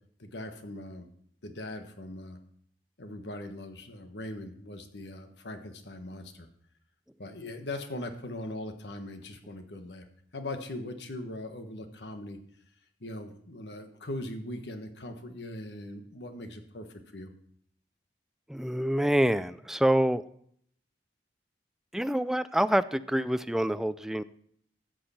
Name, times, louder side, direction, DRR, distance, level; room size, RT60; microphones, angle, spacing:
voice 1, 0.2-1.1 1.4-2.4 3.0-6.5 7.2-10.1 10.3-12.4 13.0-17.3, left 1 dB, 75° left, 7 dB, 1.3 m, -40 dB
voice 2, 18.5-20.2 21.9-24.2, equal, 5° right, 13 dB, 0.3 m, -26 dB
14.0 x 7.8 x 4.3 m, 0.65 s
head